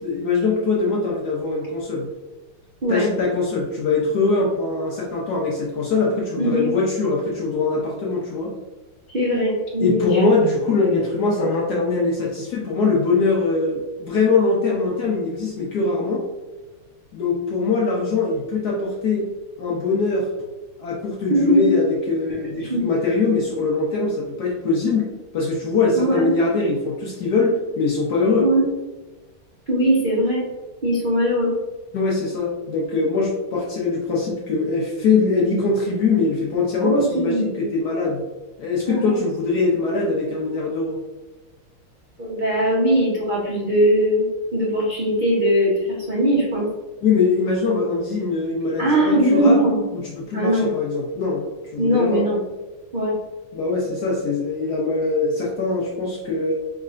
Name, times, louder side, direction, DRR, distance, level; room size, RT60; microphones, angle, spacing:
voice 1, 0.0-2.1 2.9-8.5 9.8-16.2 17.1-19.3 19.6-20.3 20.8-28.5 31.9-38.2 38.6-41.0 47.0-49.6 49.9-51.5 51.7-52.2 53.5-56.5, left 3 dB, 70° left, -3 dB, 1.0 m, -22 dB
voice 2, 6.4-6.7 9.1-10.2 21.3-21.8 22.6-22.9 25.9-26.3 28.4-28.6 29.7-30.4 30.8-31.5 36.8-37.7 38.9-39.2 42.2-44.3 44.5-46.7 47.7-47.8 48.8-49.8 50.3-50.7 51.8-52.4 52.9-53.2, equal, 65° right, -7 dB, 0.4 m, -20 dB
4.7 x 3.2 x 2.4 m, 1.2 s
omnidirectional pair, 2.3 m